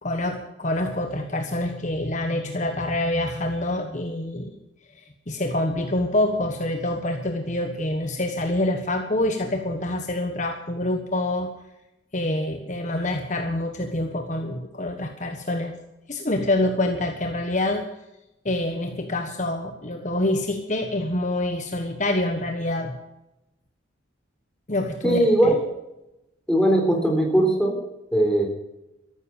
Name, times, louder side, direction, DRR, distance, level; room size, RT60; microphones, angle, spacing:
voice 1, 0.0-4.5 5.0-11.5 12.1-15.7 16.1-17.9 18.4-23.0 24.7-25.3, left 1 dB, 40° left, 5 dB, 1.3 m, -26 dB
voice 2, 25.0-25.6 26.5-27.8 28.1-28.5, right 1 dB, 5° left, 1 dB, 3.8 m, -19 dB
14.0 x 12.5 x 7.0 m, 0.90 s
head